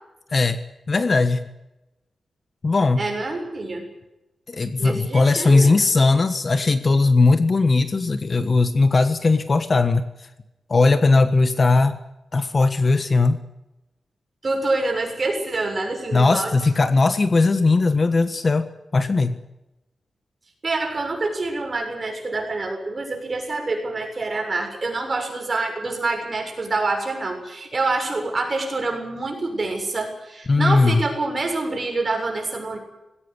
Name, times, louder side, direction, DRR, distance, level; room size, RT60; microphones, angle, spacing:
voice 1, 0.9-1.5 2.6-3.0 4.5-10.1 10.7-12.0 12.3-13.4 16.1-18.7 18.9-19.4 30.5-31.0, left 3 dB, 35° left, 10 dB, 1.4 m, -18 dB
voice 2, 3.0-3.9 4.8-5.8 14.4-16.5 20.6-32.8, right 3 dB, 35° right, 3 dB, 7.0 m, -26 dB
20.5 x 17.5 x 9.8 m, 0.92 s
wide cardioid pair, 135°, 0 cm